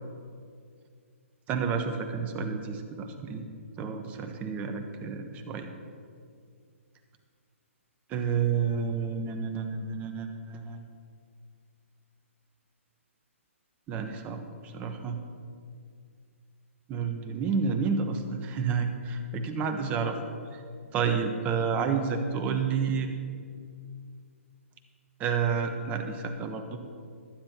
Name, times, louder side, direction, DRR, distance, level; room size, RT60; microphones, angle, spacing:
voice 1, 1.5-3.4 3.8-5.7 8.1-10.8 13.9-15.2 16.9-20.2 20.9-23.1 25.2-26.8, right 6 dB, 20° right, 6 dB, 1.1 m, -30 dB
21.5 x 9.8 x 3.0 m, 2.2 s
hypercardioid pair, 140°, 8 cm